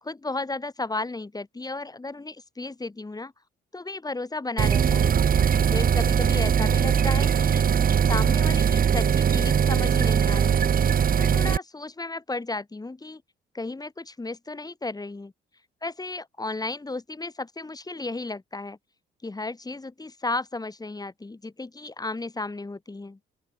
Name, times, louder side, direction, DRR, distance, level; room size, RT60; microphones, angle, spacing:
voice 1, 0.0-3.3 3.7-5.1 5.7-7.7 8.1-10.8 11.2-13.2 13.5-15.3 15.8-18.8 19.2-23.2, left 3 dB, 20° left, 4.5 m, -34 dB
sound 1, 4.6-11.6, right 7 dB, 45° right, 1.4 m, -21 dB
open air
cardioid pair, 90°, 20 cm